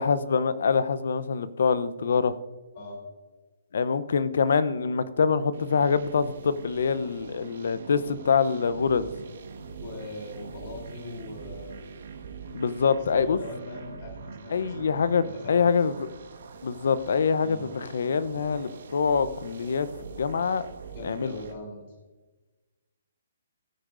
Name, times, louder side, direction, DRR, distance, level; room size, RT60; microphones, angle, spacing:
voice 1, 0.0-2.3 3.7-9.1 12.5-13.4 14.5-15.9 16.6-19.9 20.2-20.7 21.0-21.3, left 5 dB, 65° left, 14 dB, 0.7 m, -25 dB
sound 1, 5.5-21.5, right 5 dB, 60° right, 1.4 m, -44 dB
voice 2, 9.8-11.8 13.1-16.0 17.4-17.6 20.9-21.9, left 1 dB, 45° left, 0 dB, 3.5 m, -41 dB
16.0 x 9.3 x 2.6 m, 1.2 s
hypercardioid pair, 145°, 0 cm